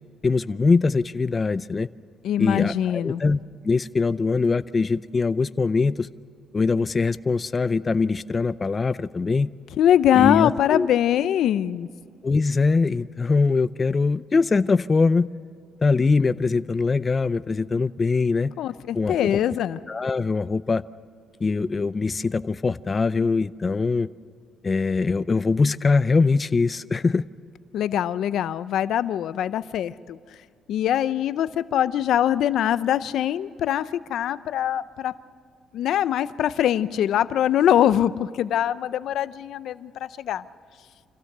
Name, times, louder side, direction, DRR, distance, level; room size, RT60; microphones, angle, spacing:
voice 1, 0.2-1.9 2.4-3.4 3.6-6.1 6.5-9.5 10.1-10.9 12.2-15.3 15.8-18.5 18.9-19.3 19.9-20.8 21.4-24.1 24.6-27.2, left 4 dB, 30° left, 15 dB, 0.5 m, -22 dB
voice 2, 2.2-3.2 9.8-11.9 18.6-19.8 27.7-30.2 30.7-35.2 35.7-40.4, left 11 dB, 75° left, 15 dB, 0.6 m, -23 dB
26.0 x 16.0 x 6.7 m, 2.2 s
cardioid pair, 90°, 0 cm